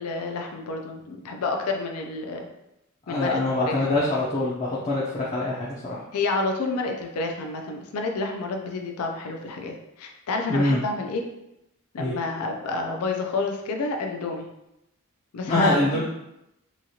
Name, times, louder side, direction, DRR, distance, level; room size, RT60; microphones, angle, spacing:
voice 1, 0.0-2.5 3.1-3.8 6.1-11.2 11.9-14.5 15.3-16.0, left 3 dB, 85° left, 3 dB, 0.4 m, -29 dB
voice 2, 3.1-6.0 10.5-10.8 12.0-12.1 15.5-16.0, left 2 dB, 30° left, -6 dB, 0.4 m, -24 dB
3.0 x 2.4 x 2.7 m, 0.86 s
head